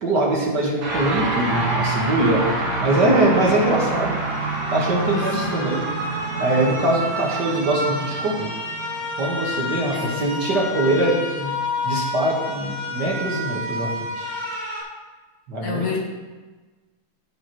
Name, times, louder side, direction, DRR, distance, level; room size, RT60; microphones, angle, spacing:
voice 1, 0.0-2.4 2.8-4.2 4.7-5.8 6.4-8.5 9.2-11.6 11.8-14.3 15.5-15.9, right 2 dB, 55° right, -2 dB, 2.0 m, -22 dB
sound 1, 0.8-10.3, right 2 dB, 85° right, 2.8 m, -27 dB
sound 2, 3.2-14.8, left 1 dB, 20° right, 2.4 m, -30 dB
voice 2, 5.1-5.5 9.9-10.5 15.6-16.0, left 5 dB, 85° left, -2 dB, 2.5 m, -29 dB
14.5 x 5.4 x 3.1 m, 1.3 s
omnidirectional pair, 2.4 m